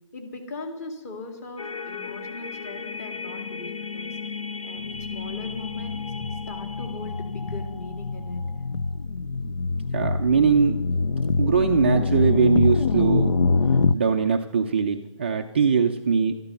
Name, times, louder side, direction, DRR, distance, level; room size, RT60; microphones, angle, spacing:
voice 1, 0.1-4.2 4.6-6.0 6.3-8.4, left 2 dB, 30° left, 5 dB, 2.2 m, -40 dB
sound 1, 1.6-8.9, left 5 dB, 75° left, 1.0 m, -36 dB
sound 2, 4.8-13.9, left 4 dB, 60° left, 0.6 m, -25 dB
voice 2, 9.9-10.8 11.4-13.3 13.9-16.3, right 6 dB, 20° right, 3 dB, 0.4 m, -21 dB
12.5 x 11.5 x 6.8 m, 0.97 s
figure-of-eight pair, 160°, 17 cm